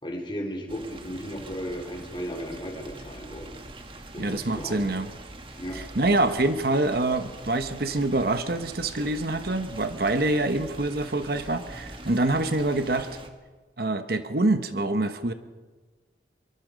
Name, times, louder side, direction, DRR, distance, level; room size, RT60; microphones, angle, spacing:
voice 1, 0.0-3.6 4.1-4.8 5.6-5.8, equal, 25° left, 2 dB, 3.5 m, -35 dB
sound 1, 0.7-13.3, right 2 dB, 30° right, 1.7 m, -43 dB
voice 2, 4.2-5.1 5.7-13.1 13.8-15.3, right 2 dB, 55° right, 9 dB, 1.1 m, -25 dB
24.5 x 23.0 x 5.2 m, 1.3 s
head